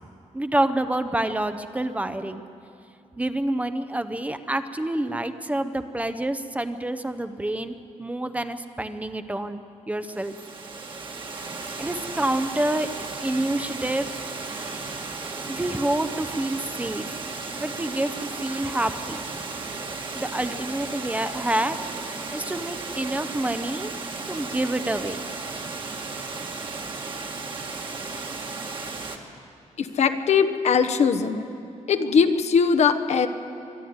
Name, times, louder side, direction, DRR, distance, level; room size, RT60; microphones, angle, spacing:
voice 1, 0.3-2.4 3.2-9.6 9.9-10.4 11.8-12.9 13.2-14.1 14.4-14.8 15.5-17.1 17.6-19.2 20.2-21.8 22.3-23.9 24.3-25.2, right 1 dB, 10° right, 10 dB, 0.7 m, -27 dB
Water, 10.0-29.2, right 3 dB, 40° right, 1.7 m, -35 dB
voice 2, 29.8-31.5 31.9-33.3, left 6 dB, 65° left, 9 dB, 1.0 m, -20 dB
24.5 x 11.0 x 9.4 m, 2.6 s
wide cardioid pair, 150°, 12 cm